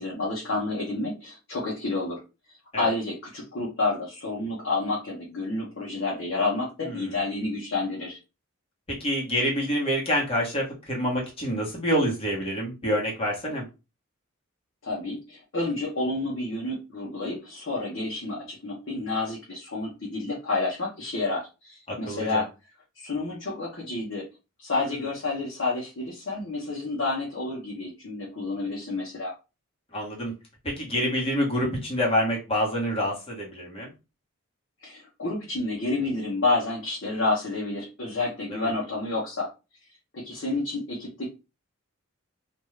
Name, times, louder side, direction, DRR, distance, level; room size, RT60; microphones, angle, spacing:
voice 1, 0.0-2.2 2.8-8.2 14.8-22.5 23.0-24.2 24.6-29.3 34.8-39.5 40.1-41.3, left 2 dB, 55° left, -5 dB, 0.9 m, -29 dB
voice 2, 6.8-7.1 9.0-13.6 21.9-22.4 29.9-30.3 30.6-33.9 38.5-38.7, equal, 25° left, -4 dB, 1.2 m, -27 dB
2.6 x 2.3 x 3.2 m, 0.29 s
head